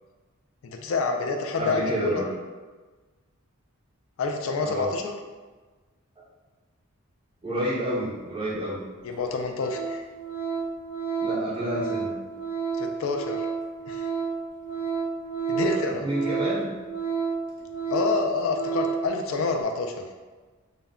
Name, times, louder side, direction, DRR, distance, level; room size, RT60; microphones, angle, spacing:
voice 1, 0.6-2.3 4.2-5.1 9.0-10.0 12.8-13.5 13.9-14.1 15.5-16.1 17.9-20.0, left 4 dB, 65° left, 4 dB, 0.3 m, -28 dB
voice 2, 1.6-2.3 4.6-4.9 7.4-8.8 11.2-12.2 15.5-16.8, equal, 25° right, -8 dB, 0.5 m, -29 dB
Organ, 8.5-8.6 9.1-9.3 9.5-19.1 19.5-19.6, right 5 dB, 85° right, 0.8 m, -31 dB
2.2 x 2.1 x 3.5 m, 1.3 s
head